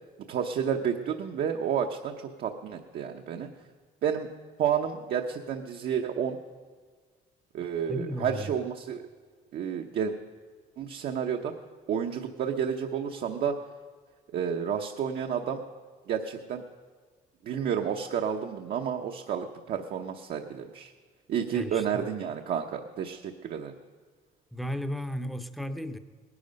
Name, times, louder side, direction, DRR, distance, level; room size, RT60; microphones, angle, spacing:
voice 1, 0.3-3.5 4.0-4.3 4.6-6.4 7.5-9.0 9.5-10.1 10.8-11.5 11.9-13.6 14.3-15.6 16.1-16.6 17.4-20.9 21.3-23.7, right 8 dB, 65° right, 2 dB, 0.9 m, -30 dB
voice 2, 7.9-8.6 21.5-22.1 24.5-26.0, equal, ahead, 9 dB, 0.8 m, -35 dB
19.0 x 11.0 x 5.3 m, 1.5 s
cardioid pair, 110°, 17 cm